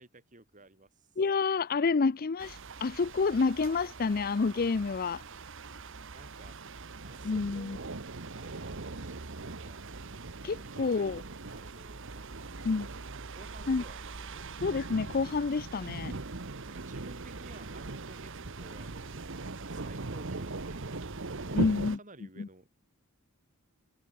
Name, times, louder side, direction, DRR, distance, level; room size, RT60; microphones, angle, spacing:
voice 1, 0.0-1.2 5.8-6.6 7.0-7.9 8.2-9.8 10.5-12.9 13.3-14.5 16.7-18.3 18.6-22.7, right 2 dB, 35° right, 3.6 m, -54 dB
voice 2, 1.2-5.2 7.2-7.8 10.4-11.2 12.6-12.9 13.7-13.8 14.6-16.1 21.5-22.0 22.4-22.5, left 4 dB, 40° left, 0.5 m, -28 dB
sound 1, 2.4-22.0, right 3 dB, 55° right, 1.2 m, -40 dB
head